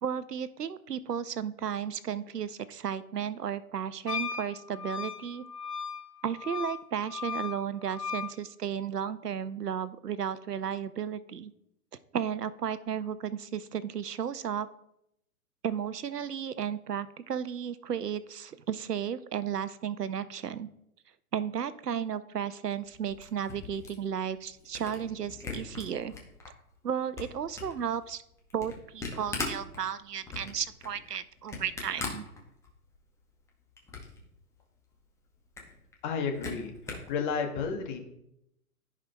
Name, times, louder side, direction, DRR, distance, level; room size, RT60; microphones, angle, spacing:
voice 1, 0.0-5.4 6.2-11.5 12.1-14.7 15.6-20.7 21.3-26.1 26.8-28.2 28.5-32.2, right 8 dB, 90° right, 15 dB, 0.6 m, -34 dB
Wind instrument woodwind instrument, 4.1-8.3, left 6 dB, 90° left, 0.9 m, -37 dB
Camera, 22.8-26.5 26.9-33.0 33.3-34.2 34.6-34.7 34.9-35.0 35.3-37.1, left 4 dB, 5° left, 0.8 m, -41 dB
voice 2, 36.0-36.7 37.1-38.0, left 5 dB, 30° left, 4 dB, 1.1 m, -31 dB
14.5 x 5.0 x 2.2 m, 0.81 s
figure-of-eight pair, 120°, 46 cm